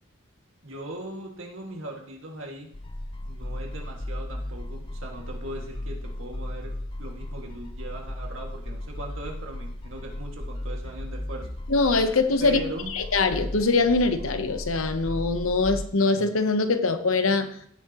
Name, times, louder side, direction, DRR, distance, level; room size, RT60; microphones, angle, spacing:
voice 1, 0.6-2.7 3.3-6.7 7.0-11.6 12.4-13.0, right 1 dB, 65° right, 0 dB, 2.2 m, -39 dB
sound 1, 2.7-15.8, left 1 dB, 25° left, 0.7 m, -36 dB
voice 2, 11.7-12.6 12.9-17.5, left 3 dB, 75° left, 9 dB, 1.0 m, -23 dB
16.5 x 8.3 x 3.1 m, 0.65 s
head